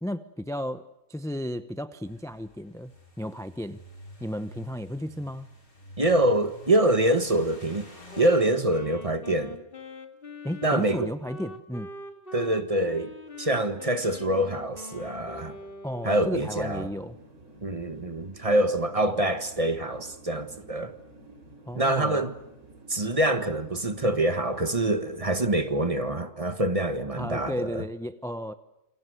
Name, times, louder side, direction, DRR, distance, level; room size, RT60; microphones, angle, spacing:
voice 1, 0.0-0.8 1.1-2.9 3.2-3.8 4.2-5.5 10.4-11.9 15.8-17.2 21.7-22.2 27.2-28.5, equal, 5° left, 0.5 m, -33 dB
sound 1, 2.0-8.3, left 1 dB, 75° left, 6.2 m, -48 dB
voice 2, 6.0-7.9 8.2-9.6 10.6-11.1 12.3-13.1 13.4-15.6 16.0-16.9 17.6-20.9 21.7-22.3 22.9-27.8, right 1 dB, 25° right, 1.6 m, -25 dB
Wind instrument woodwind instrument, 8.1-16.3, left 2 dB, 40° left, 2.3 m, -43 dB
sound 2, 16.5-25.9, right 2 dB, 90° right, 4.1 m, -51 dB
28.0 x 25.0 x 8.0 m
omnidirectional pair, 1.5 m